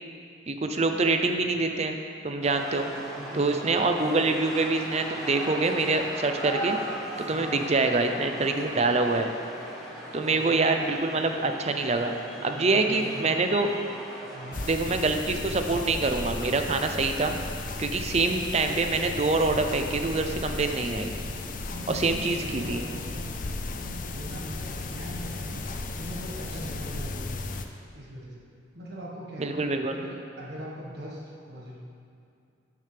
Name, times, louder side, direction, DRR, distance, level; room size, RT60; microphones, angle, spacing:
voice 1, 0.5-2.0 2.2-2.9 3.3-6.8 7.2-9.3 10.1-12.1 12.4-13.7 14.7-17.3 17.8-21.1 21.9-22.8 29.4-30.0, right 3 dB, 35° right, 5 dB, 0.6 m, -25 dB
sound 1, 2.4-14.7, right 1 dB, ahead, 1.8 m, -38 dB
voice 2, 2.9-3.6 6.0-6.2 7.3-7.6 10.3-10.7 12.4-13.6 14.3-14.6 21.7-23.4 23.7-25.7 25.9-27.6 27.9-28.4 28.7-29.6 29.9-31.8, equal, 60° right, -4 dB, 1.6 m, -41 dB
sound 2, 14.5-27.7, left 3 dB, 45° left, 0.5 m, -35 dB
12.0 x 6.7 x 3.4 m, 2.5 s
head